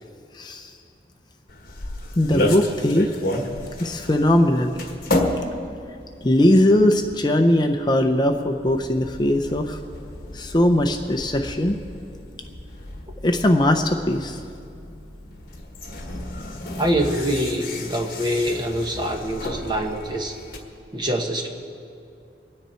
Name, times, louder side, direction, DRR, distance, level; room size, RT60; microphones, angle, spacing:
voice 1, 0.3-0.7 2.2-3.1 3.8-4.7 6.2-9.8 10.3-11.8 13.2-14.4 16.5-16.7, left 1 dB, 25° left, 5 dB, 0.6 m, -20 dB
sound 1, 1.5-20.6, left 1 dB, 55° left, 1.5 m, -32 dB
voice 2, 16.8-20.3 20.9-21.5, equal, 25° right, 2 dB, 1.2 m, -24 dB
24.5 x 9.7 x 4.5 m, 2.6 s
head